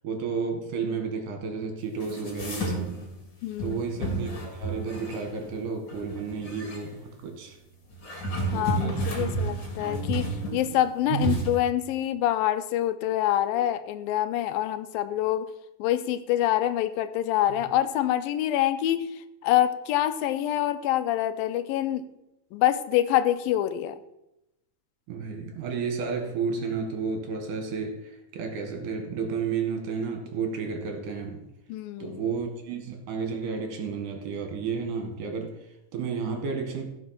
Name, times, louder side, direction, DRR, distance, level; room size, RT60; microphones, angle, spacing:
voice 1, 0.0-3.0 3.6-7.6 8.5-9.6 11.1-11.3 25.1-31.4 32.0-36.9, right 5 dB, 65° right, 4 dB, 3.1 m, -32 dB
sound 1, 2.0-3.2 3.6-5.5 5.9-6.8 7.9-10.9 11.2-11.5, right 2 dB, 35° left, 2.5 m, -31 dB
voice 2, 3.4-3.8 8.5-15.5 15.8-22.1 22.5-24.0 31.7-32.2, left 12 dB, 85° left, 12 dB, 2.4 m, -26 dB
15.5 x 5.3 x 5.8 m, 0.88 s
omnidirectional pair, 4.1 m